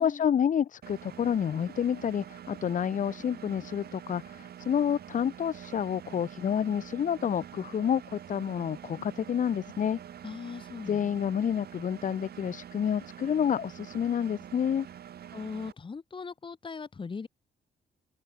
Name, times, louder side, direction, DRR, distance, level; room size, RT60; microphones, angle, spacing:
voice 1, 0.0-10.0 10.9-14.9, left 8 dB, 45° left, 1.1 m, -29 dB
Engine, 0.8-15.7, right 9 dB, 60° right, 3.1 m, -46 dB
voice 2, 10.2-11.1 15.3-17.3, left 5 dB, 30° left, 3.2 m, -39 dB
wide cardioid pair, 160°, 18 cm